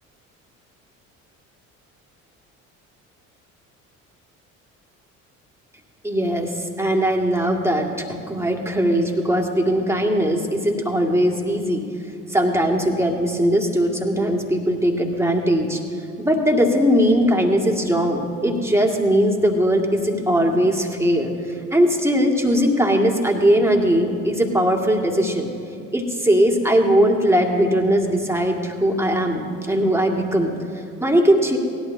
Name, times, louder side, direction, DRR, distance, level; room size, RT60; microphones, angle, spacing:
voice 1, 6.0-11.8 12.3-15.8 16.2-25.5 25.9-31.6, equal, 5° right, 1 dB, 1.9 m, -20 dB
19.0 x 11.5 x 2.7 m, 2.4 s
figure-of-eight pair, 55°, 41 cm